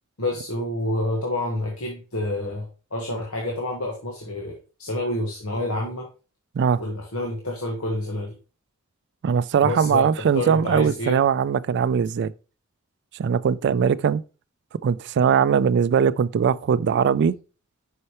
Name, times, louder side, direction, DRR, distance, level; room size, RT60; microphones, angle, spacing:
voice 1, 0.2-6.1 6.8-8.3 9.6-11.2, left 1 dB, 75° left, 1.3 m, -28 dB
voice 2, 9.2-12.3 13.2-14.2 14.8-17.4, right 7 dB, 55° right, 0.3 m, -20 dB
6.4 x 5.6 x 2.9 m
head